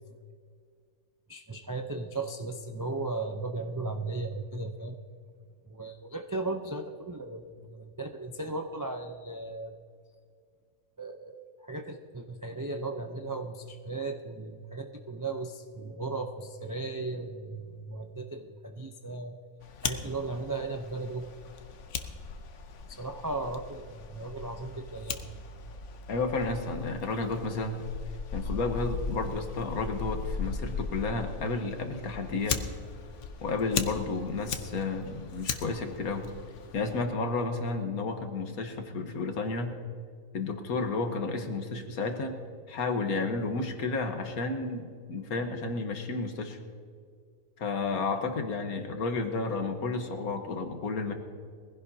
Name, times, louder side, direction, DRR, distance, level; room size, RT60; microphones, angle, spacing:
voice 1, 1.3-5.0 5.7-9.8 11.0-19.4 19.8-21.3 22.9-25.5, right 3 dB, 30° right, 4 dB, 0.3 m, -36 dB
Fire, 19.6-37.0, left 5 dB, 60° left, 1.1 m, -38 dB
voice 2, 26.1-27.8 28.3-32.7 33.4-36.3 36.7-39.7 40.3-42.4 42.7-46.6 47.6-51.1, left 3 dB, 85° left, 6 dB, 1.7 m, -32 dB
21.5 x 16.0 x 2.8 m, 2.1 s
omnidirectional pair, 1.5 m